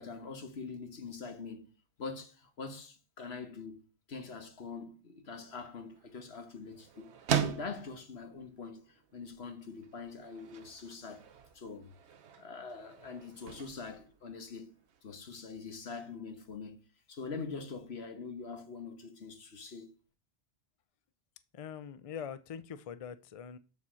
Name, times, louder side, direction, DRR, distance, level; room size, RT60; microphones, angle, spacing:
voice 1, 0.0-11.2 11.5-11.9 12.4-14.8 15.0-19.9, left 4 dB, 70° left, 1.5 m, -44 dB
sound 1, 5.2-15.0, right 9 dB, 80° right, 1.1 m, -41 dB
voice 2, 21.5-23.6, left 7 dB, 50° left, 0.4 m, -43 dB
7.1 x 4.3 x 6.2 m
omnidirectional pair, 1.1 m